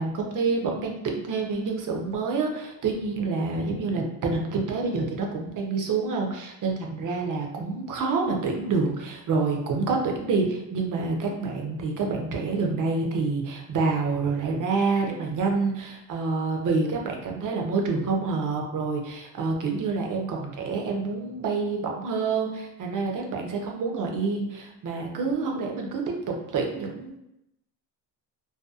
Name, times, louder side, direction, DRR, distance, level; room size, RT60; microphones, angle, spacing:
voice 1, 0.0-27.2, right 4 dB, 50° right, 1 dB, 0.6 m, -27 dB
2.7 x 2.2 x 2.3 m, 0.84 s
cardioid pair, 105°, 41 cm